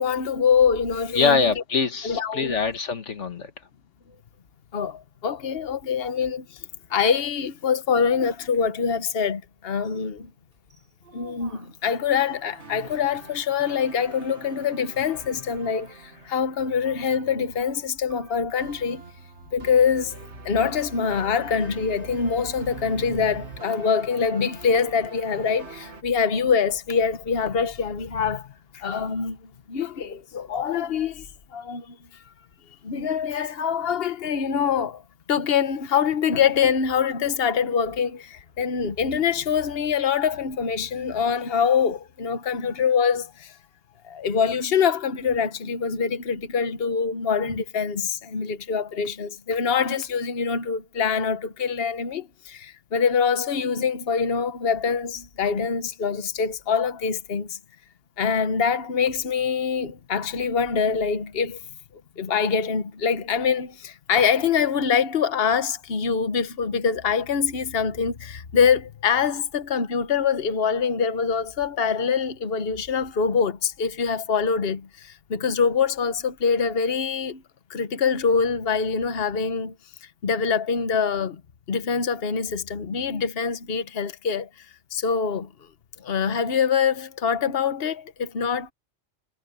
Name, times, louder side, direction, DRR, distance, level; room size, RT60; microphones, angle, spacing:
voice 1, 0.0-1.5 2.0-2.6 4.7-10.3 11.1-19.0 19.5-20.2 20.4-32.0 32.8-35.0 35.3-43.6 44.0-57.6 58.2-61.6 62.2-77.4 77.7-79.7 80.2-81.4 81.7-84.5 84.9-85.5 86.0-88.7, left 6 dB, 55° left, 1.3 m, -24 dB
voice 2, 1.1-3.5, left 5 dB, 70° left, 1.9 m, -24 dB
sound 1, 4.2-12.1 15.2-15.3, right 2 dB, 45° right, 4.8 m, -57 dB
sound 2, 12.1-26.0, right 4 dB, 65° right, 2.1 m, -44 dB
omnidirectional pair, 1.2 m